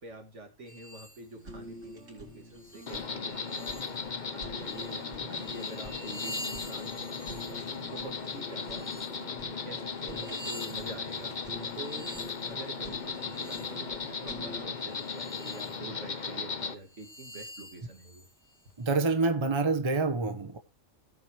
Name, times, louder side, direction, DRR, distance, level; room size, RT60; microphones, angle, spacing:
voice 1, 0.0-3.9 4.3-7.1 7.5-8.9 9.3-12.1 12.5-18.3, right 2 dB, 70° right, 2.4 m, -46 dB
sound 1, 0.7-1.2 1.9-2.0 2.5-4.1 4.5-9.2 9.8-13.8 14.7-15.8 16.2-16.3 16.9-19.0, left 1 dB, 15° left, 1.5 m, -47 dB
Fire, 1.4-14.6, equal, 85° right, 4.1 m, -47 dB
Insect, 2.9-16.7, left 5 dB, 40° left, 1.0 m, -37 dB
voice 2, 18.8-20.6, right 3 dB, 25° right, 1.0 m, -27 dB
17.5 x 6.1 x 3.1 m
omnidirectional pair, 1.3 m